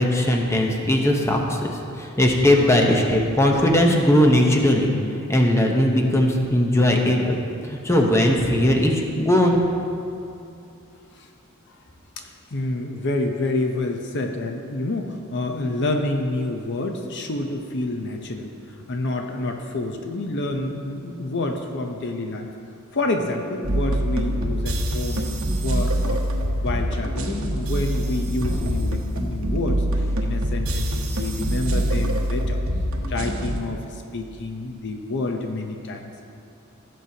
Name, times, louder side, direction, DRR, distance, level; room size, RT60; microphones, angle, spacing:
voice 1, 0.0-4.9 5.3-7.4 7.7-9.6, left 1 dB, 15° left, 1 dB, 0.9 m, -19 dB
voice 2, 12.2-22.5 22.9-26.2 26.6-32.6 33.1-36.3, left 2 dB, 55° left, 4 dB, 0.7 m, -28 dB
sound 1, 23.6-33.6, equal, 70° right, 1.0 m, -24 dB
16.5 x 7.5 x 2.8 m, 2.6 s
head